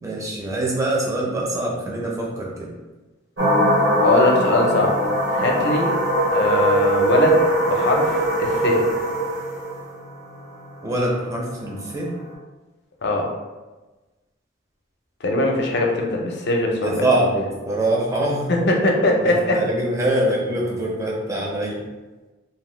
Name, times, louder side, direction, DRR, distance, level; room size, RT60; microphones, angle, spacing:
voice 1, 0.0-2.7 10.8-12.1 16.7-18.6 19.2-21.8, right 1 dB, 15° right, -3 dB, 0.5 m, -24 dB
sound 1, 3.4-12.3, right 1 dB, 80° right, 1.1 m, -21 dB
voice 2, 4.0-5.0 5.3-6.0 6.3-8.9 13.0-13.3 15.2-17.1 18.5-19.6, left 2 dB, 55° left, 0 dB, 0.5 m, -21 dB
2.7 x 2.1 x 3.2 m, 1.2 s
head